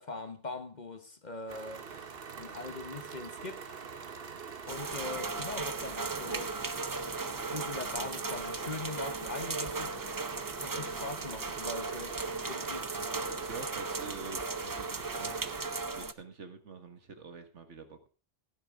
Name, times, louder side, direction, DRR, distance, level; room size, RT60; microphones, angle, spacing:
voice 1, 0.0-1.9 2.4-3.7 4.7-6.6 7.4-10.0 10.6-13.0, left 3 dB, 40° left, 1.2 m, -41 dB
sound 1, 1.5-15.8, right 6 dB, 50° right, 1.2 m, -44 dB
sound 2, 4.7-16.1, right 3 dB, 35° right, 0.3 m, -37 dB
voice 2, 13.4-15.5 15.9-18.1, right 4 dB, 70° right, 1.9 m, -47 dB
15.5 x 10.0 x 3.6 m
omnidirectional pair, 1.3 m